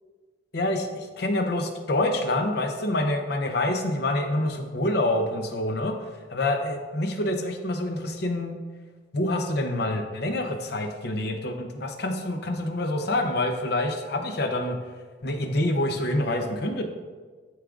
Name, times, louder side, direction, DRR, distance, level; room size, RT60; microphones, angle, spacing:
voice 1, 0.5-5.9 6.3-8.5 9.1-14.8 15.2-16.8, left 1 dB, 60° left, 5 dB, 0.7 m, -26 dB
11.5 x 4.8 x 2.4 m, 1.4 s
head